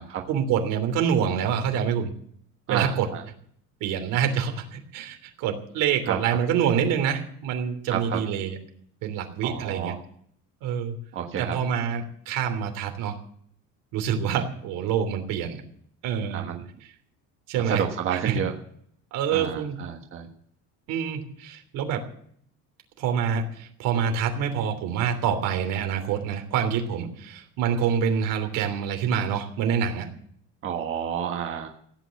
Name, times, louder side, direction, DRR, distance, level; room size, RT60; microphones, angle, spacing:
voice 1, 0.3-2.1 2.7-3.1 3.8-8.6 9.0-9.9 10.6-11.0 11.4-13.2 13.9-15.6 16.0-16.4 16.8-16.9 17.5-17.8 18.1-18.4 19.1-19.8 20.9-22.0 23.0-30.1, right 7 dB, 80° right, 5 dB, 3.2 m, -26 dB
voice 2, 2.7-3.2 6.1-6.2 7.9-8.2 9.4-9.9 11.1-11.6 16.3-16.6 17.7-18.5 19.3-20.3 30.6-31.7, right 9 dB, 40° right, 2 dB, 1.5 m, -30 dB
16.0 x 9.0 x 8.2 m, 0.64 s
cardioid pair, 170°, 32 cm